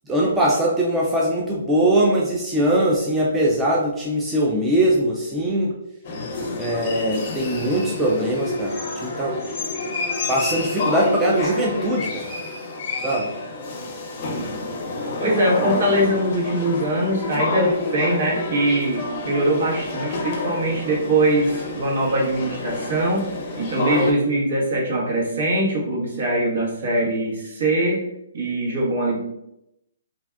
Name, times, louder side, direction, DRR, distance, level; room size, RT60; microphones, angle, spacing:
voice 1, 0.1-5.8 6.6-9.4 10.3-12.3 13.0-13.3, right 1 dB, 10° right, -4 dB, 0.4 m, -21 dB
sound 1, 6.1-24.1, left 2 dB, 35° left, 0.6 m, -28 dB
voice 2, 15.2-23.3 23.6-28.0 28.3-29.2, right 1 dB, 65° right, -3 dB, 1.2 m, -22 dB
2.6 x 2.3 x 3.3 m, 0.84 s
hypercardioid pair, 155°, 0 cm